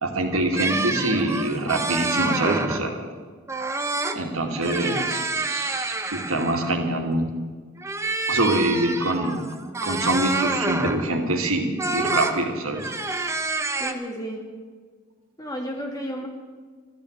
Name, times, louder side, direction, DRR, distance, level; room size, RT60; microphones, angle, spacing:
voice 1, 0.0-3.1 4.1-7.3 8.3-9.4 9.8-12.9, right 1 dB, 80° right, 3 dB, 2.3 m, -25 dB
sound 1, 0.6-3.0 3.5-4.2 4.5-6.7 7.8-11.1 11.8-12.4 12.7-13.9, right 2 dB, 15° right, 1.0 m, -28 dB
voice 2, 13.8-14.4 15.4-16.3, equal, 15° left, 1 dB, 2.3 m, -32 dB
14.0 x 12.5 x 8.1 m, 1.5 s
head